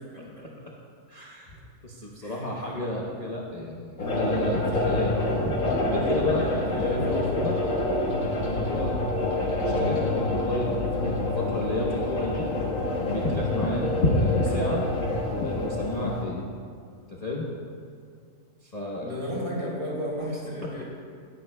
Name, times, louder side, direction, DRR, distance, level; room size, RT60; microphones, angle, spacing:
voice 1, 1.1-1.5 1.8-5.2 5.8-7.6 8.4-12.5 13.1-14.9 15.3-16.4 17.1-17.5 18.6-19.1 20.6-20.8, left 1 dB, 30° left, -4 dB, 0.9 m, -32 dB
voice 2, 2.2-2.7 6.4-7.7 13.9-14.2 19.0-20.8, equal, 40° right, -6 dB, 3.2 m, -34 dB
sound 1, 4.0-16.2, left 2 dB, 55° left, 1.8 m, -26 dB
17.5 x 10.5 x 2.3 m, 2.2 s
omnidirectional pair, 1.7 m